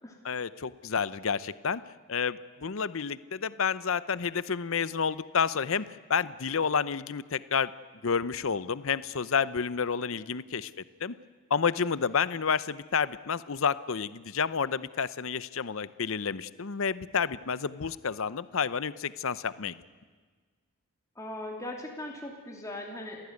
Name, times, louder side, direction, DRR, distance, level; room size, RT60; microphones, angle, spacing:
voice 1, 0.2-1.8 2.1-7.7 8.0-10.7 11.0-11.1 11.5-19.8, left 6 dB, 60° left, 16 dB, 0.7 m, -30 dB
voice 2, 21.2-23.2, left 1 dB, 15° left, -1 dB, 3.1 m, -39 dB
28.0 x 16.5 x 9.6 m, 1.5 s
head